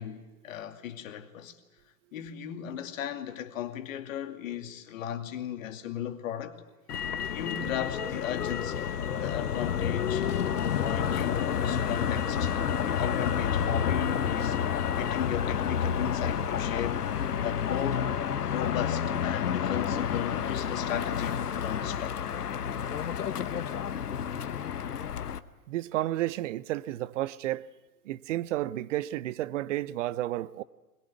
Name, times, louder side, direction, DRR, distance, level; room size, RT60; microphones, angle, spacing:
voice 1, 0.0-1.6 2.1-6.6 7.3-8.9 9.2-10.3 10.8-12.5 12.8-14.6 15.0-17.1 17.4-18.1 18.4-22.2, left 10 dB, 60° left, 2.5 m, -36 dB
Motor vehicle (road), 6.9-25.4, left 8 dB, 80° left, 1.1 m, -30 dB
voice 2, 25.7-27.6 28.1-30.6, right 15 dB, 55° right, 0.8 m, -31 dB
22.0 x 21.5 x 9.4 m
hypercardioid pair, 110°, 45 cm